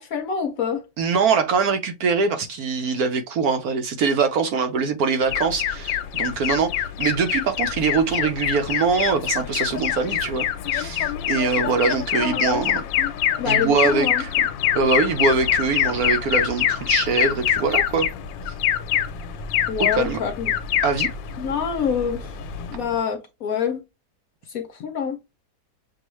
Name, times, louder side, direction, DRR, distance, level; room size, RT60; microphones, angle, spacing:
voice 1, 0.0-0.8 12.2-12.6 13.0-13.1 13.4-14.2 19.7-20.5 21.4-22.3 22.7-23.8 24.5-25.2, left 7 dB, 65° left, 0.9 m, -26 dB
voice 2, 1.0-12.8 13.4-14.3 14.7-18.1 19.8-20.2 20.8-21.1, right 5 dB, 65° right, 1.0 m, -23 dB
Alarm, 5.3-22.9, left 10 dB, 90° left, 1.3 m, -25 dB
6.8 x 2.3 x 3.0 m
omnidirectional pair, 2.0 m